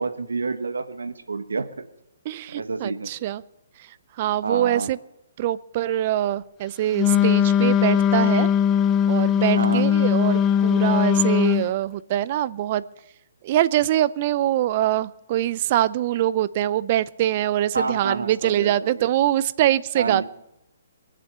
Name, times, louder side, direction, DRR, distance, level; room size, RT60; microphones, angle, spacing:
voice 1, 0.0-1.7 2.5-3.1 4.4-4.9 9.6-9.9 17.7-19.1 19.9-20.2, right 4 dB, 80° right, 10 dB, 1.2 m, -28 dB
voice 2, 2.2-3.4 4.2-5.0 5.4-8.5 9.1-12.8 13.4-20.2, right 13 dB, 40° right, 18 dB, 0.5 m, -23 dB
Wind instrument woodwind instrument, 6.9-11.7, left 8 dB, 20° left, 0.5 m, -19 dB
22.5 x 7.6 x 6.7 m, 0.88 s
hypercardioid pair, 135°, 0 cm